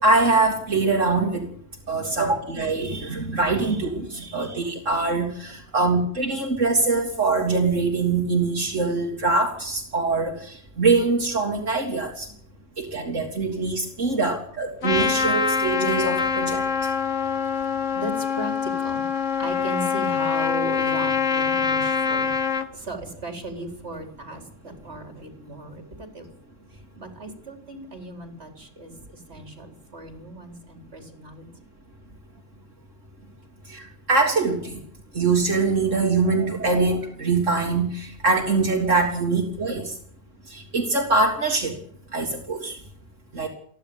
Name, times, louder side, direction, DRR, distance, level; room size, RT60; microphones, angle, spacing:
voice 1, 0.0-1.5 1.9-12.3 12.8-16.9 33.7-34.8 35.1-39.9 40.5-41.8 42.1-42.8 43.3-43.5, right 3 dB, 80° right, 0 dB, 3.5 m, -23 dB
Trumpet, 14.8-22.7, left 6 dB, 75° left, 1.9 m, -24 dB
voice 2, 17.5-19.1 19.4-26.3 27.0-31.7, right 1 dB, 60° right, 4 dB, 4.7 m, -37 dB
29.5 x 11.5 x 8.8 m, 0.62 s
omnidirectional pair, 1.3 m